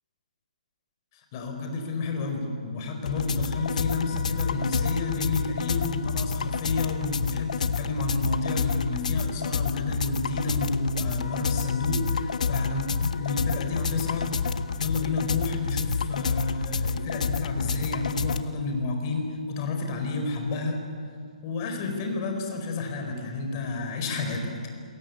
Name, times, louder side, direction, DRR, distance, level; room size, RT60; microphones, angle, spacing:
voice 1, 1.3-14.4 14.8-20.8 21.4-24.5, left 3 dB, 25° left, 4 dB, 4.6 m, -30 dB
sound 1, 3.1-18.4, left 5 dB, 70° left, 1.3 m, -29 dB
27.0 x 22.0 x 9.5 m, 2.3 s
hypercardioid pair, 165°, 4 cm